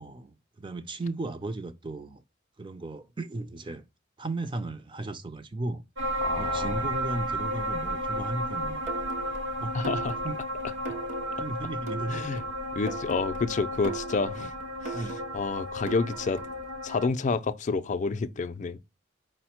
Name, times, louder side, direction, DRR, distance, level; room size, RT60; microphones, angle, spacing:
voice 1, 0.0-2.2 2.6-3.8 4.2-5.8 6.4-8.9 9.6-9.8 10.2-10.3 11.4-12.4 14.3-14.5 14.9-15.2, right 2 dB, 25° right, 0.5 m, -35 dB
sound 1, 6.0-17.1, equal, 70° right, 0.9 m, -33 dB
voice 2, 6.2-6.8 9.7-10.2 12.1-12.4 12.8-14.5 14.9-15.0 15.3-16.4 16.8-18.8, left 4 dB, 40° left, 0.4 m, -29 dB
sound 2, 8.9-16.7, right 3 dB, 40° right, 0.9 m, -40 dB
4.9 x 2.1 x 4.3 m
head